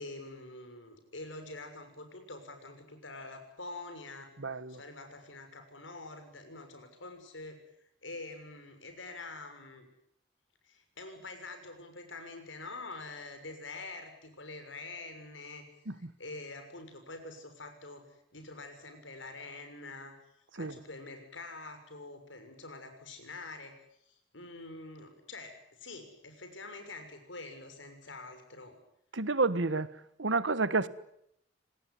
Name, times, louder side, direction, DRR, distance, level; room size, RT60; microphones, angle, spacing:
voice 1, 0.0-4.3 4.7-7.6 8.0-9.9 10.6-15.6 15.9-20.1 20.5-23.7 24.1-28.8, left 3 dB, 85° left, 6.7 m, -46 dB
voice 2, 4.4-4.8 15.9-16.1 20.6-20.7 29.1-29.9 30.2-30.9, right 3 dB, 80° right, 1.4 m, -30 dB
27.0 x 19.5 x 9.7 m
head